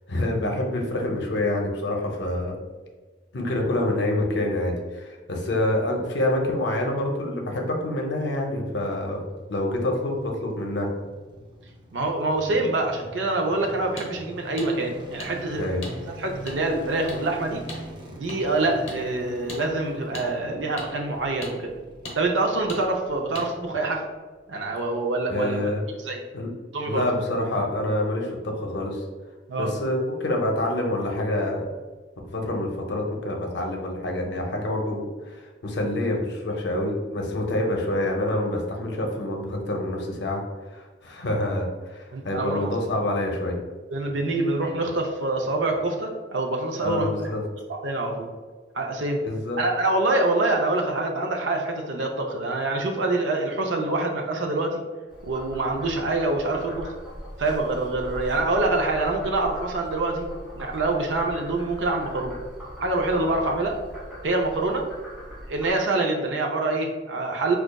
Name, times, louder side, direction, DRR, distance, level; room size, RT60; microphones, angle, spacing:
voice 1, 0.1-2.6 3.3-10.9 15.6-15.8 25.3-25.8 26.3-26.5 26.8-29.0 29.6-31.6 32.3-40.4 40.7-43.6 46.8-47.4 49.2-49.6, left 1 dB, 65° left, 1 dB, 0.6 m, -27 dB
sound 1, 8.7-23.9 24.1-24.2, right 1 dB, 25° right, 0.6 m, -44 dB
voice 2, 11.9-15.7 16.2-17.6 18.1-21.7 22.1-24.1 24.5-26.2 26.7-27.0 29.5-29.7 41.4-41.5 42.1-42.7 43.9-47.3 47.7-48.3 48.7-49.2 49.6-54.8 55.2-56.9 57.4-62.4 62.8-63.8 64.2-64.9 65.5-67.6, right 2 dB, 75° right, 2 dB, 0.5 m, -25 dB
sound 2, 14.0-14.1 14.6-14.7 15.2-15.3 15.8-15.9 16.5-16.6 17.1-17.2 17.7-17.8 18.3-18.4 18.9-19.0 19.5-19.6 20.1-20.3 20.8-20.9 21.4-21.5 22.0-22.2 22.7-22.8 23.3-23.5, left 2 dB, 35° left, 0.8 m, -36 dB
Frog, 55.1-65.7, equal, 5° right, 1.5 m, -40 dB
5.0 x 2.3 x 2.2 m, 1.3 s
head